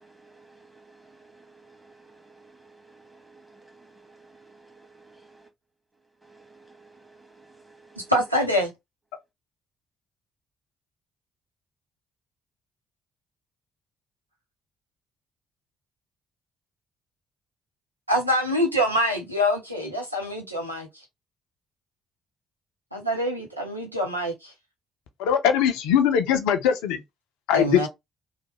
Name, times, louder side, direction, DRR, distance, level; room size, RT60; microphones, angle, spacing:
voice 1, 0.0-5.5 6.2-8.1, right 3 dB, 10° right, 1.5 m, -54 dB
voice 2, 8.0-8.7 18.1-21.0 22.9-24.5 27.5-27.9, equal, 90° right, 0.6 m, -25 dB
voice 3, 25.2-27.0 27.5-27.9, left 8 dB, 65° left, 0.5 m, -21 dB
3.1 x 2.1 x 3.2 m
figure-of-eight pair, 45°, 0 cm